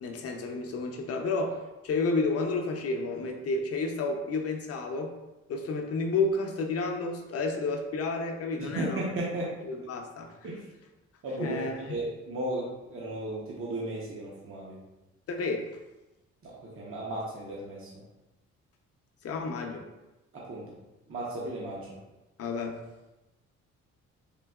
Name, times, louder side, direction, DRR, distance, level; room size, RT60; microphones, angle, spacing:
voice 1, 0.0-1.6 1.8-5.1 5.5-9.1 9.6-10.3 11.4-11.9 15.3-15.7 19.2-19.9 22.4-22.8, left 3 dB, 55° left, 3 dB, 0.6 m, -31 dB
voice 2, 8.6-9.6 10.4-10.7 11.2-14.8 16.4-17.9 20.3-20.8 21.1-22.0, right 1 dB, 45° right, -5 dB, 0.8 m, -35 dB
3.8 x 2.7 x 2.3 m, 1.0 s
cardioid pair, 90°, 30 cm